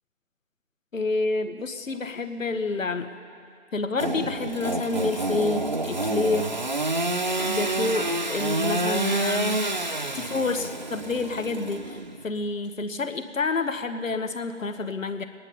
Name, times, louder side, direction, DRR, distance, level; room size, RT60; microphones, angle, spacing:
voice 1, 0.9-3.1 3.7-6.6 7.4-9.6 10.1-15.2, left 3 dB, 85° left, 9 dB, 1.1 m, -28 dB
Engine / Sawing, 4.0-12.2, right 2 dB, 40° right, 0.4 m, -28 dB
21.5 x 9.9 x 5.4 m, 2.5 s
figure-of-eight pair, 155°, 39 cm